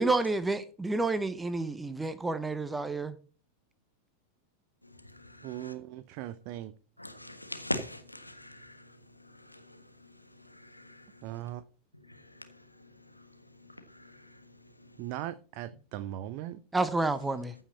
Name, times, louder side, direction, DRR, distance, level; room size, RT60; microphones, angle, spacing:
voice 1, 0.0-3.1 16.7-17.5, right 2 dB, 10° right, 0.8 m, -29 dB
voice 2, 4.8-5.7 7.0-11.4 11.9-15.1, left 1 dB, 85° left, 1.4 m, -44 dB
voice 3, 5.4-6.7 11.2-11.6 15.0-16.6, right 13 dB, 45° right, 0.5 m, -39 dB
14.5 x 5.7 x 4.3 m
figure-of-eight pair, 90°, 0 cm